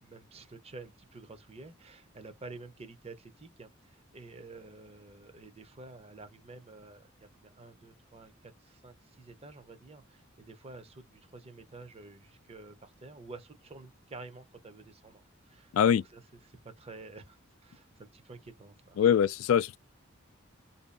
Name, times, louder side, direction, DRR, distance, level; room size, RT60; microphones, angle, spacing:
voice 1, 0.0-19.1, right 3 dB, 30° right, 0.6 m, -50 dB
voice 2, 19.0-19.8, left 8 dB, 85° left, 0.3 m, -23 dB
2.7 x 2.3 x 2.2 m
head